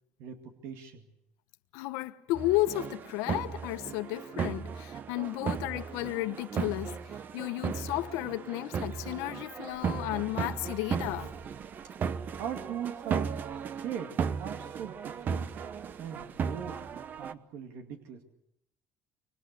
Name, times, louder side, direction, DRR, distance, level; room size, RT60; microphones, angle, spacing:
voice 1, 0.2-1.1 12.4-13.4 13.8-15.5 16.0-18.2, right 8 dB, 70° right, 2.3 m, -40 dB
voice 2, 1.7-11.4, left 18 dB, 85° left, 1.1 m, -33 dB
sound 1, 2.3-17.3, right 6 dB, 40° right, 1.0 m, -36 dB
26.0 x 24.0 x 6.8 m
cardioid pair, 130°, 5 cm